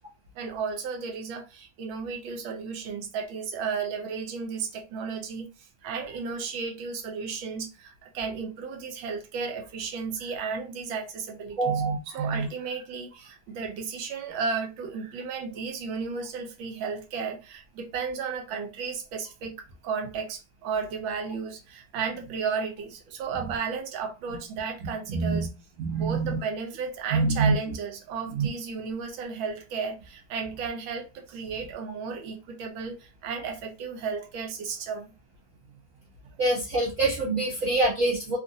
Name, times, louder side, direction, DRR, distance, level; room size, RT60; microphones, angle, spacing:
voice 1, 0.4-5.5 5.8-19.6 19.8-25.5 25.9-35.1, right 5 dB, 75° right, 1.4 m, -34 dB
voice 2, 11.6-12.5 25.1-25.5 25.8-26.4 27.1-27.5 28.4-28.5 36.4-38.4, right 3 dB, 60° right, 0.8 m, -25 dB
3.2 x 2.5 x 2.6 m
omnidirectional pair, 2.2 m